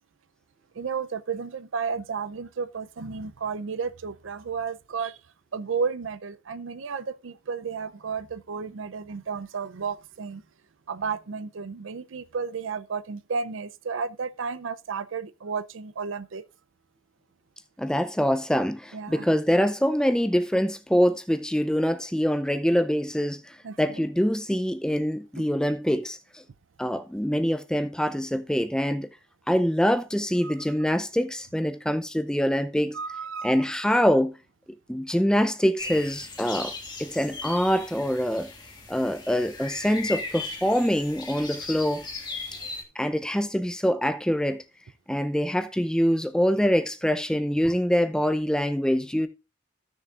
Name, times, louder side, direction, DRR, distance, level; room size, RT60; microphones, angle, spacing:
voice 1, 0.7-5.2 5.5-10.4 10.9-16.4 18.9-19.3 23.6-24.0 30.4-30.5 32.9-33.5, right 5 dB, 80° right, 0.5 m, -32 dB
voice 2, 17.8-26.4 26.8-29.1 29.5-33.0 33.4-34.3 34.9-36.7 37.0-38.5 38.9-42.1 43.0-44.6 45.1-49.3, equal, 5° left, 0.5 m, -24 dB
sound 1, 35.8-42.8, left 3 dB, 20° left, 1.7 m, -38 dB
15.0 x 6.6 x 2.5 m
head